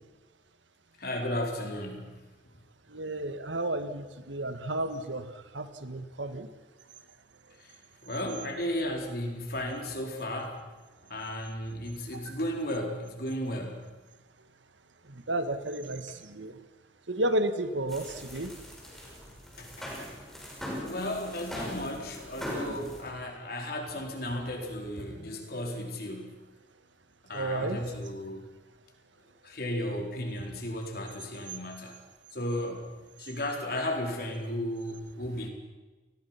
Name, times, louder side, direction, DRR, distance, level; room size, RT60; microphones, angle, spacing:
voice 1, 1.0-2.2 8.0-10.7 11.1-13.8 19.6-19.9 20.8-26.3 27.2-28.4 29.4-31.9 32.3-32.9 33.2-35.5, left 1 dB, 55° left, 2 dB, 4.2 m, -34 dB
voice 2, 2.9-6.5 12.1-12.4 15.1-16.5 17.1-18.5 27.3-27.8, right 1 dB, 85° right, 10 dB, 1.7 m, -32 dB
sound 1, 17.9-23.0, equal, ahead, 5.4 m, -40 dB
29.5 x 20.0 x 5.9 m, 1.3 s
head